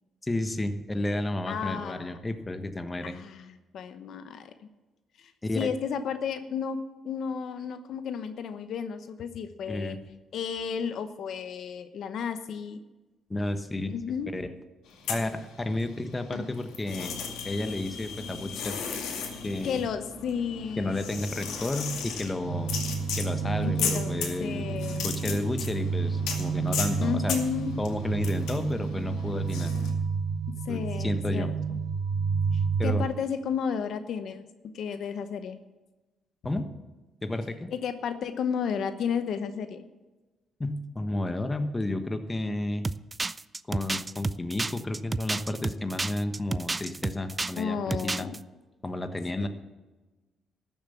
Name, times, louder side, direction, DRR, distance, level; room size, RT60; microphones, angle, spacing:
voice 1, 0.2-3.2 5.4-5.7 9.7-10.0 13.3-13.9 14.3-14.5 15.1-17.1 17.4-18.8 19.4-19.8 20.8-22.7 23.2-24.7 25.0-27.4 27.8-29.7 30.7-31.5 32.8-33.0 36.4-36.7 37.2-37.7 40.6-42.9 43.7-48.3 48.8-49.5, left 2 dB, 20° left, 8 dB, 1.3 m, -32 dB
voice 2, 1.5-2.2 3.0-4.5 5.2-6.8 7.0-10.0 10.3-12.8 13.9-14.3 19.6-21.2 23.6-24.1 24.4-25.1 27.0-27.7 30.7-31.8 32.5-34.5 34.7-35.6 37.7-39.8 47.5-48.4 49.4-49.5, left 7 dB, 70° left, 10 dB, 0.9 m, -33 dB
sound 1, 14.9-16.0 16.3-29.9, left 6 dB, 85° left, 2.3 m, -36 dB
sound 2, 22.4-33.0, right 5 dB, 90° right, 1.7 m, -30 dB
sound 3, 42.8-47.6 47.9-48.4, right 3 dB, 20° right, 0.4 m, -31 dB
13.5 x 7.3 x 7.1 m, 1.2 s
cardioid pair, 90°, 0 cm